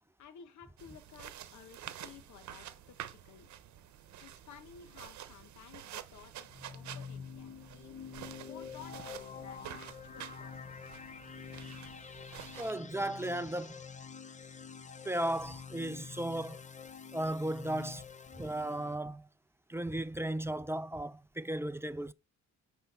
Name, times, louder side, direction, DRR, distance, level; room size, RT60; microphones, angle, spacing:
voice 1, 0.2-3.5 4.2-11.0, left 8 dB, 75° left, 1.1 m, -55 dB
sound 1, 0.8-12.7, right 11 dB, 70° right, 0.9 m, -49 dB
sound 2, 6.4-19.0, left 6 dB, 25° left, 0.7 m, -47 dB
voice 2, 12.6-13.8 15.0-16.6 17.1-18.0 18.4-19.3 19.7-22.1, right 1 dB, 10° right, 0.4 m, -35 dB
8.0 x 3.3 x 5.5 m
cardioid pair, 90°, 30 cm